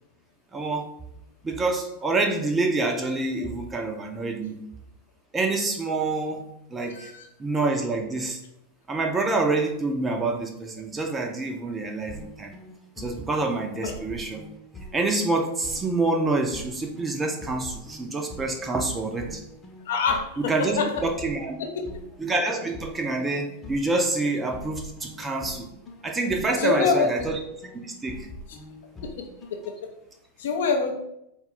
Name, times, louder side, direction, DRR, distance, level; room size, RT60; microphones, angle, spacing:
voice 1, 0.5-0.9 1.4-4.6 5.3-7.1 7.4-8.4 8.9-12.5 13.0-14.4 14.9-19.4 20.5-21.6 22.2-25.7 26.0-27.4 27.8-28.3, right 3 dB, 15° right, 3 dB, 0.5 m, -27 dB
voice 2, 6.9-7.3 13.8-14.0 19.9-21.0 26.6-27.1 29.0-29.9 30.4-30.9, left 5 dB, 55° left, 4 dB, 0.4 m, -26 dB
sound 1, 12.1-29.8, left 1 dB, 15° left, 0.7 m, -44 dB
4.2 x 2.3 x 3.6 m, 0.82 s
figure-of-eight pair, 90°, 0 cm